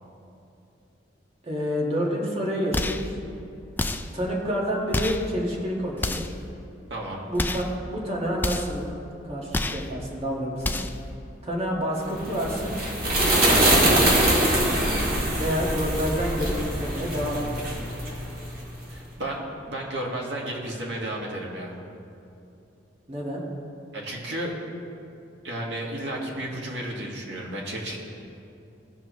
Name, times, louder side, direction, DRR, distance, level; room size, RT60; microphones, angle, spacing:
voice 1, 1.4-3.2 4.1-6.4 7.2-8.8 9.2-10.8 11.4-12.8 13.4-14.9 15.3-17.6 23.1-23.4, equal, 35° right, -3 dB, 1.7 m, -29 dB
sound 1, 2.7-3.1 3.8-4.2 4.9-5.3 6.0-6.4 7.3-7.7 8.4-8.8 9.5-9.9 10.6-11.0, left 2 dB, 10° left, 0.3 m, -28 dB
voice 2, 6.9-7.2 18.9-21.8 23.9-24.5 25.4-28.0, right 1 dB, 70° right, -3 dB, 1.9 m, -33 dB
sound 2, 12.1-18.7, right 1 dB, 55° right, 1.9 m, -23 dB
17.5 x 6.0 x 3.1 m, 2.7 s
head